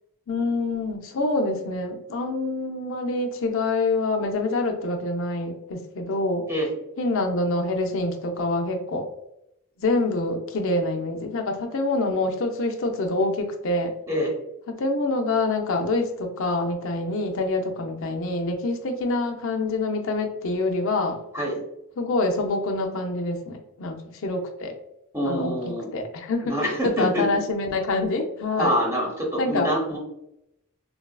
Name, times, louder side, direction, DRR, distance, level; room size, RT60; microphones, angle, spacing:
voice 1, 0.3-6.5 7.0-9.1 9.8-13.9 14.7-21.2 22.0-24.7 25.2-26.6 26.8-28.8 29.4-29.7, left 2 dB, 60° left, 4 dB, 0.5 m, -26 dB
voice 2, 25.1-25.9 26.4-27.2 28.6-30.0, equal, 10° right, -2 dB, 0.9 m, -25 dB
3.9 x 2.4 x 2.2 m, 0.82 s
head